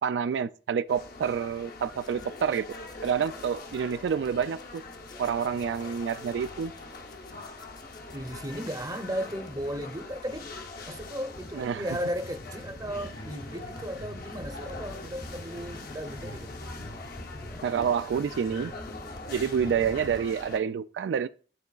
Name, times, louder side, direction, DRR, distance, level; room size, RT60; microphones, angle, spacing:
voice 1, 0.0-2.7 3.0-4.8 5.2-6.7 11.5-11.9 17.6-18.7 19.3-21.3, right 7 dB, 80° right, 0.3 m, -28 dB
sound 1, 0.9-20.6, left 3 dB, 60° left, 1.0 m, -43 dB
sound 2, 2.0-20.3, left 1 dB, 25° left, 0.5 m, -46 dB
voice 2, 8.1-10.5 10.9-16.5, equal, 20° right, 0.7 m, -35 dB
10.5 x 3.9 x 2.4 m
head